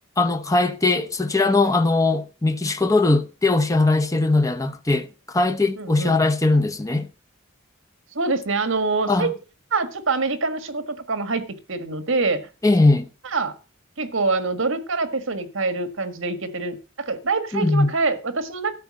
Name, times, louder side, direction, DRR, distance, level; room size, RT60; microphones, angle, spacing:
voice 1, 0.2-7.1 9.1-9.3 12.6-13.1 17.5-17.9, left 2 dB, 15° left, 0.7 m, -20 dB
voice 2, 5.8-6.1 8.1-9.3 9.7-12.4 13.3-13.5 14.0-18.7, right 3 dB, 65° right, 1.5 m, -25 dB
12.5 x 5.8 x 7.5 m
head